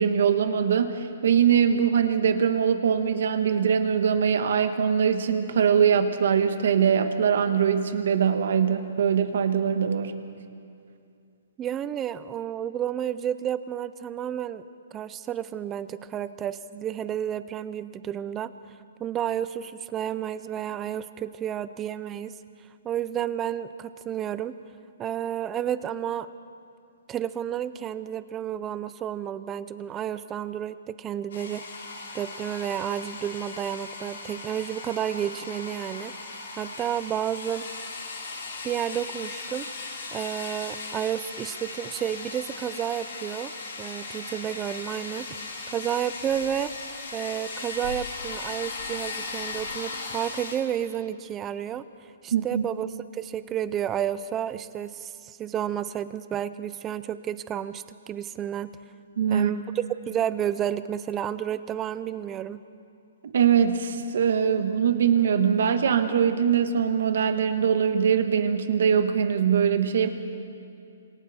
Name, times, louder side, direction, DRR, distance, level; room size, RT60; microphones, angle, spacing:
voice 1, 0.0-10.1 52.3-52.6 59.2-59.5 63.2-70.1, right 7 dB, 55° right, 8 dB, 1.5 m, -22 dB
voice 2, 11.6-14.6 14.9-18.5 19.0-22.3 22.8-24.5 25.0-26.3 27.1-31.6 32.1-36.1 36.6-37.7 38.6-39.7 40.1-43.5 43.8-45.3 45.7-46.7 47.1-51.8 52.2-52.9 53.1-58.7 59.3-59.7 60.1-62.6, right 10 dB, 10° right, 14 dB, 0.4 m, -31 dB
sound 1, 31.3-50.6, left 3 dB, 60° left, 7.2 m, -37 dB
28.0 x 26.5 x 4.3 m, 2.5 s
hypercardioid pair, 180°, 0 cm